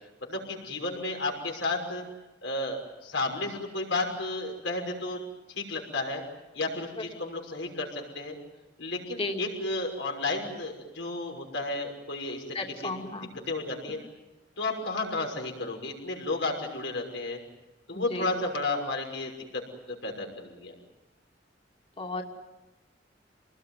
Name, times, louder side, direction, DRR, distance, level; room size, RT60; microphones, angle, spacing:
voice 1, 0.2-2.0 2.4-5.2 5.5-6.2 6.5-8.4 8.8-12.9 13.5-14.0 14.6-17.4 17.9-19.6 19.9-20.7, left 2 dB, 80° left, 2 dB, 6.0 m, -32 dB
voice 2, 12.5-13.3 17.9-18.4 22.0-22.2, left 2 dB, 30° left, 2 dB, 2.7 m, -34 dB
28.5 x 20.0 x 9.5 m, 1.1 s
head